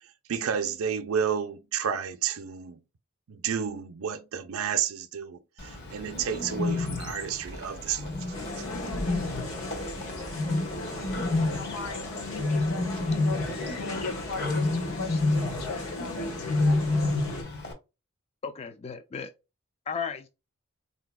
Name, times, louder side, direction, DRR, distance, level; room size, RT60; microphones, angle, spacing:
voice 1, 0.3-2.8 3.3-8.2, right 8 dB, 65° right, 0.5 m, -31 dB
Bird, 5.6-17.7, left 2 dB, 50° left, 0.9 m, -30 dB
sound 1, 8.3-17.4, left 2 dB, 70° left, 1.1 m, -37 dB
voice 2, 11.3-17.0, left 4 dB, 90° left, 0.6 m, -39 dB
voice 3, 18.4-19.3 19.9-20.3, left 6 dB, 30° left, 0.3 m, -34 dB
4.0 x 2.7 x 2.2 m
head